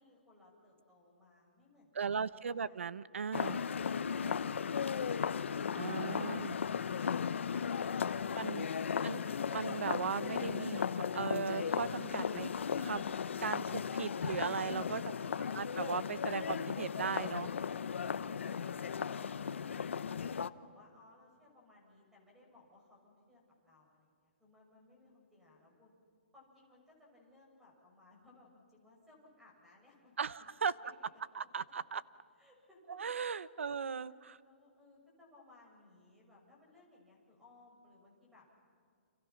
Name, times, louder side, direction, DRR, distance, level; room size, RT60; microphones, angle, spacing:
voice 1, 0.0-2.8 15.1-15.8 18.0-25.9 26.3-30.1 32.4-33.0 33.6-33.8 34.4-38.5, left 2 dB, 5° right, -2 dB, 6.3 m, -63 dB
voice 2, 1.9-3.6 5.8-6.5 8.4-8.7 9.0-9.2 9.5-12.5 12.8-13.1 13.4-15.1 15.5-17.5 30.2-30.7 31.3-32.0 32.9-34.4, right 6 dB, 85° right, 17 dB, 0.9 m, -37 dB
sound 1, 3.3-20.5, left 6 dB, 80° left, 0.9 m, -36 dB
30.0 x 28.0 x 5.9 m, 2.3 s
hypercardioid pair, 165°, 7 cm